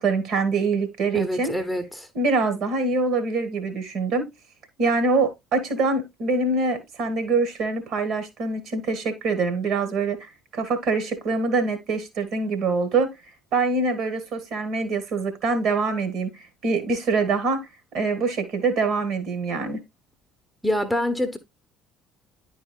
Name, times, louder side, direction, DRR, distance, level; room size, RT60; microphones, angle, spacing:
voice 1, 0.0-1.5 2.1-4.3 4.8-13.1 13.5-16.3 16.6-17.6 17.9-19.8, right 3 dB, 55° right, 2.0 m, -24 dB
voice 2, 1.1-2.1 20.6-21.4, left 1 dB, ahead, 1.1 m, -26 dB
10.5 x 4.7 x 2.2 m
figure-of-eight pair, 55°, 0 cm